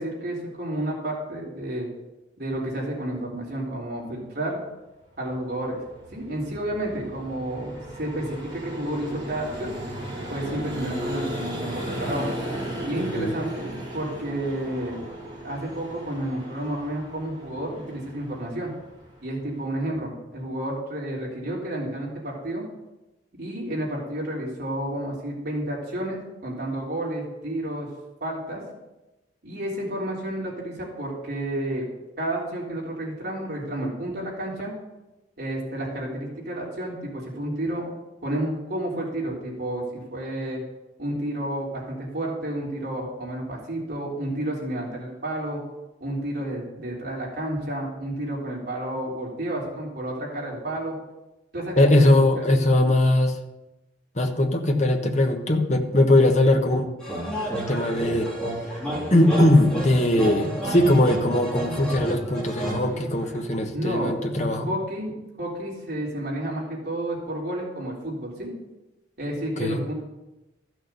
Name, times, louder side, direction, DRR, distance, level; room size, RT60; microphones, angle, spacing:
voice 1, 0.0-1.9 2.4-4.6 5.2-5.8 6.1-9.7 10.3-12.3 12.8-15.0 15.4-18.7 19.2-22.6 23.4-27.9 28.2-28.6 29.4-31.9 32.2-34.7 35.4-38.0 38.2-40.6 41.0-45.6 46.0-50.9 51.5-52.1 63.7-65.1 65.4-68.5 69.2-69.9, right 1 dB, 55° right, -4 dB, 3.5 m, -31 dB
Vehicle, 5.1-19.8, equal, 25° right, 4.1 m, -36 dB
voice 2, 51.8-53.4 54.2-56.9 57.6-58.3 59.1-64.7 69.6-69.8, left 1 dB, 40° left, 3 dB, 1.2 m, -20 dB
sound 1, 57.0-63.5, right 1 dB, 5° left, 3.5 m, -31 dB
14.5 x 6.3 x 6.7 m, 1.0 s
head